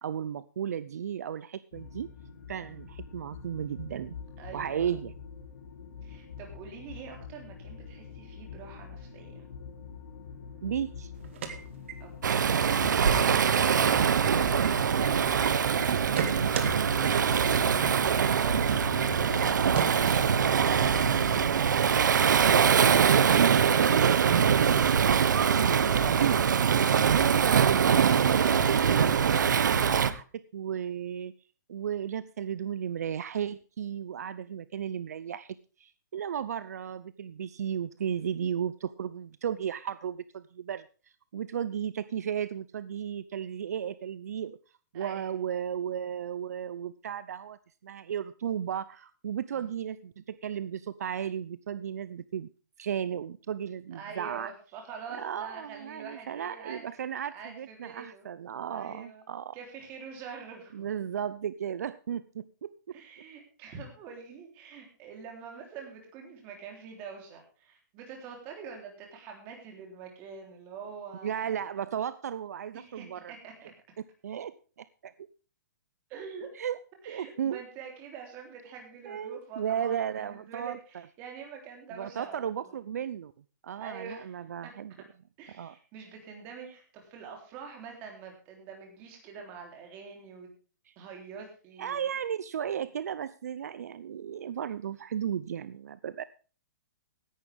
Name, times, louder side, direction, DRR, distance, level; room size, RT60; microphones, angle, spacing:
voice 1, 0.0-2.1 2.5-4.2 4.5-5.1 10.6-11.1 16.2-16.3 18.2-18.5 25.5-26.4 27.1-31.3 31.7-40.9 41.3-44.6 44.9-52.5 52.8-54.5 55.1-59.5 60.7-62.7 71.2-73.3 74.2-75.1 76.5-76.8 77.1-77.6 79.0-80.8 82.0-83.3 83.6-84.9 85.6-85.7 90.9-91.0 91.8-96.2, right 9 dB, 60° right, 16 dB, 0.7 m, -34 dB
sound 1, 1.7-21.5, left 6 dB, 85° left, 3.7 m, -44 dB
voice 2, 4.4-4.9 6.0-9.4 12.0-12.7 25.6-26.4 44.9-45.3 49.5-49.7 53.9-56.8 57.3-58.3 58.7-59.2 59.5-60.9 62.9-71.5 72.7-73.7 76.1-76.6 77.0-82.8 83.7-84.7 85.4-90.5 91.0-92.1, right 6 dB, 20° right, 2 dB, 3.5 m, -46 dB
sound 2, 11.2-12.3 12.6-12.7 13.1-13.5 13.8-15.5 15.8-16.7 17.0-17.1 17.4-17.5 17.8-17.9 18.2-18.3 18.6-18.7 19.0-19.1 19.4-19.5 19.7-20.8, right 7 dB, 40° right, 2.1 m, -35 dB
Waves surf, 12.2-30.1, right 7 dB, 85° right, 1.2 m, -23 dB
16.5 x 11.0 x 3.5 m, 0.37 s
hypercardioid pair, 180°, 10 cm